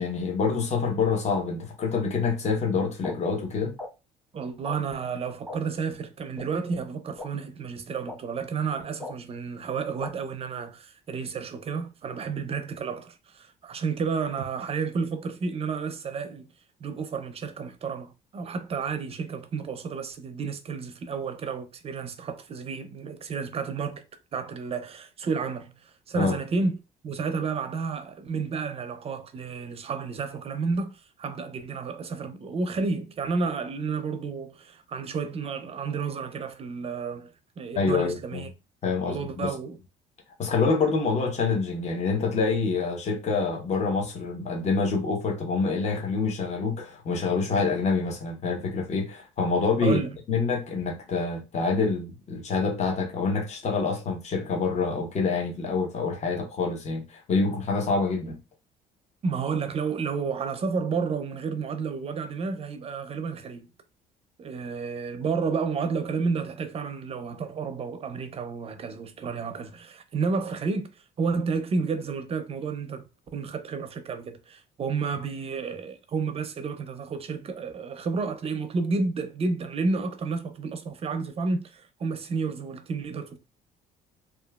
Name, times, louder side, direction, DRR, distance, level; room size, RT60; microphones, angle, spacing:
voice 1, 0.0-3.8 26.1-26.4 37.8-38.5 38.8-39.5 40.4-50.0 50.3-58.4, left 4 dB, 40° left, 0.8 m, -26 dB
sound 1, 3.0-3.1 3.8-3.9 4.6-4.8 5.5-5.6 6.4-6.5 7.2-7.3 8.1-8.2 9.0-9.1 10.0-10.1, left 2 dB, 5° left, 0.9 m, -36 dB
voice 2, 4.3-16.5 16.8-24.0 24.3-26.8 27.0-30.9 31.2-38.5 39.0-39.8 49.8-50.2 59.2-63.7 64.4-73.1 73.3-83.4, right 5 dB, 35° right, 0.5 m, -31 dB
2.9 x 2.3 x 2.3 m
cardioid pair, 110°, 17 cm